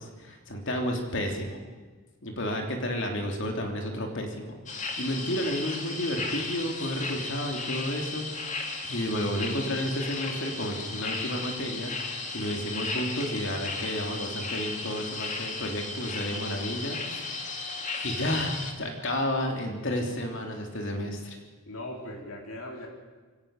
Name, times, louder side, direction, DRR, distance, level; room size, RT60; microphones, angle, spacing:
voice 1, 0.0-1.6 2.2-8.3 8.9-17.4 18.0-21.4, equal, 60° left, 3 dB, 3.1 m, -31 dB
sound 1, 4.7-18.7, left 3 dB, 35° left, 2.2 m, -35 dB
voice 2, 21.7-22.9, left 1 dB, 75° left, 1 dB, 3.6 m, -39 dB
23.0 x 17.5 x 6.6 m, 1.3 s
head